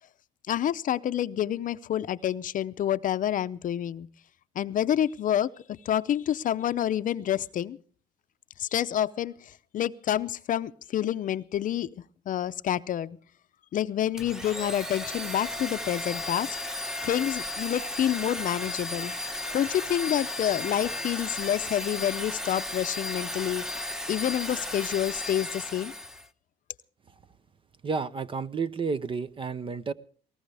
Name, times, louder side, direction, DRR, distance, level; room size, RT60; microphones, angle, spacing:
voice 1, 0.5-4.1 4.5-5.5 5.8-7.8 8.6-11.9 12.3-13.2 13.7-23.6 24.1-25.9, left 11 dB, 50° left, 13 dB, 0.7 m, -28 dB
Domestic sounds home sounds, 14.2-26.3, left 1 dB, 5° right, 1.0 m, -34 dB
voice 2, 27.8-29.9, right 5 dB, 30° right, 14 dB, 0.8 m, -31 dB
21.0 x 18.5 x 3.4 m, 0.43 s
cardioid pair, 110°, 17 cm